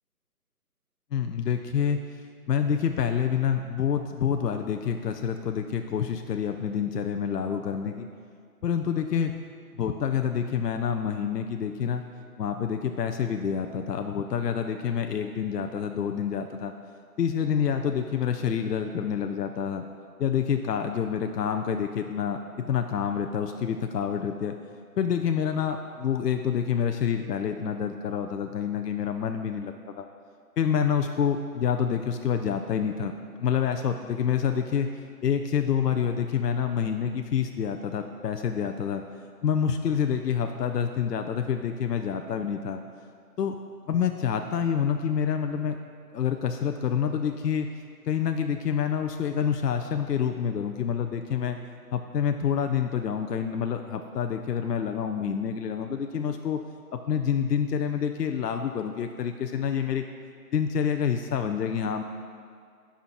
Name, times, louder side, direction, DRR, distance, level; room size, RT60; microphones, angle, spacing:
voice 1, 1.1-2.0 2.5-8.1 8.6-9.4 9.8-12.0 12.4-16.7 17.2-19.8 20.2-24.6 25.0-30.1 30.6-34.9 35.2-39.0 39.4-42.8 43.4-43.5 43.9-45.8 46.1-47.7 48.1-51.6 51.9-56.6 56.9-60.0 60.5-62.0, left 7 dB, 80° left, 6 dB, 0.6 m, -27 dB
9.5 x 5.6 x 3.0 m, 2.1 s
hypercardioid pair, 170°, 47 cm